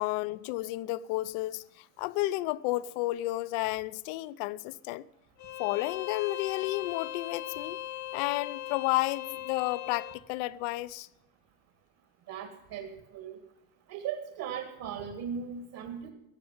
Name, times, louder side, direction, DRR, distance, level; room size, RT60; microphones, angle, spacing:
voice 1, 0.0-5.1 5.6-7.8 8.1-11.1, left 18 dB, 65° left, 0.8 m, -32 dB
Bowed string instrument, 5.4-10.2, left 13 dB, 35° left, 0.9 m, -39 dB
voice 2, 12.3-13.4 13.9-16.1, right 7 dB, 50° right, 2.2 m, -38 dB
15.0 x 8.5 x 8.8 m
supercardioid pair, 120°, 47 cm